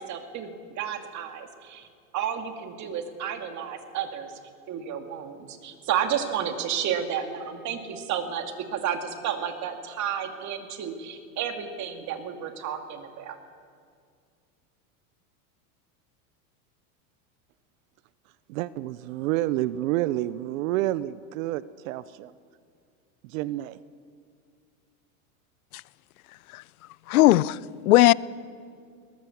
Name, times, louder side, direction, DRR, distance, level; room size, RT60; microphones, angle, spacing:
voice 1, 0.0-1.9 2.1-4.3 4.7-13.4, right 8 dB, 40° right, 5 dB, 2.5 m, -31 dB
voice 2, 18.5-22.3 23.2-23.8, right 15 dB, 70° right, 16 dB, 0.7 m, -29 dB
voice 3, 27.1-28.1, left 17 dB, 90° left, 22 dB, 0.6 m, -18 dB
22.0 x 18.0 x 7.1 m, 2.2 s
supercardioid pair, 120°, 42 cm